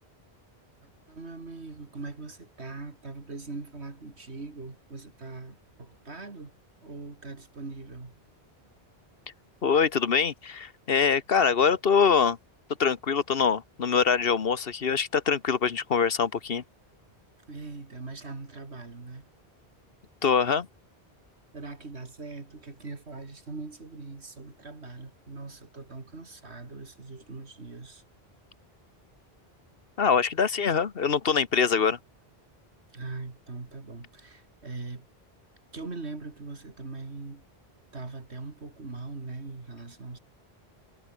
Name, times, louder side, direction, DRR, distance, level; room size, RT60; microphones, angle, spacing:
voice 1, 0.8-6.5 6.8-8.1 17.5-19.3 21.5-28.0 32.9-35.1 35.7-37.4 37.9-40.2, right 3 dB, 85° right, 3.2 m, -41 dB
voice 2, 9.6-12.4 12.8-16.6 20.2-20.7 30.0-32.0, left 6 dB, 60° left, 1.3 m, -24 dB
omnidirectional pair, 1.1 m